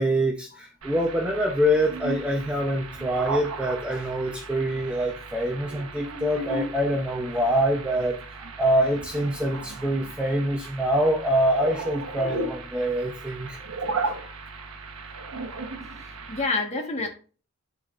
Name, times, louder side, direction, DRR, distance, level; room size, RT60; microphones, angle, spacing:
voice 1, 0.0-13.6 13.9-14.0, equal, 5° right, 1 dB, 0.6 m, -25 dB
sound 1, 0.8-16.5, right 3 dB, 70° right, 1.0 m, -36 dB
voice 2, 16.0-17.1, left 3 dB, 30° left, 2 dB, 1.4 m, -30 dB
10.5 x 4.1 x 2.4 m, 0.37 s
head